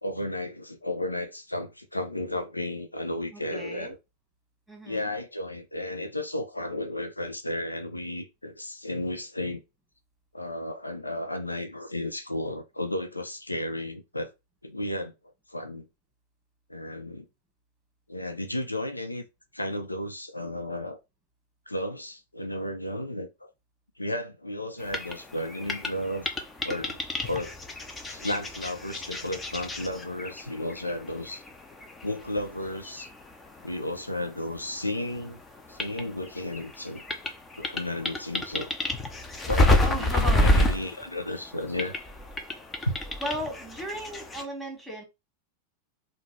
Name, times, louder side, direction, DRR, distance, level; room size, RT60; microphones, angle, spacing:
voice 1, 0.0-4.0 4.9-9.6 10.3-14.3 14.6-15.1 15.5-15.9 16.7-17.2 18.1-19.2 19.5-21.0 21.7-23.5 24.0-26.3 26.6-27.0 27.2-27.5 28.1-31.4 32.0-33.1 33.6-35.4 35.7-37.0 37.6-38.7 39.4-42.0 42.9-43.0, left 1 dB, 85° left, 0.7 m, -33 dB
voice 2, 3.3-3.9 4.7-5.1 39.8-40.6 43.2-45.0, equal, ahead, 1.9 m, -35 dB
sound 1, 24.8-34.8 35.1-44.4, left 1 dB, 15° left, 0.8 m, -29 dB
3.9 x 2.6 x 4.6 m
figure-of-eight pair, 90°, 0 cm